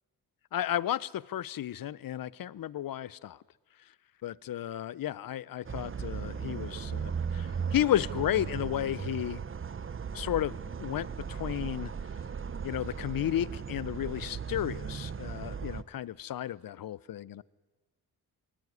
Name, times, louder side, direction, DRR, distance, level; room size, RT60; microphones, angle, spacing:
voice 1, 0.5-3.4 4.2-9.4 10.1-11.9 12.6-17.4, left 12 dB, 60° left, 22 dB, 0.7 m, -33 dB
sound 1, 5.7-15.8, right 6 dB, 30° right, 0.9 m, -37 dB
22.0 x 18.0 x 9.6 m, 1.3 s
cardioid pair, 80°, 39 cm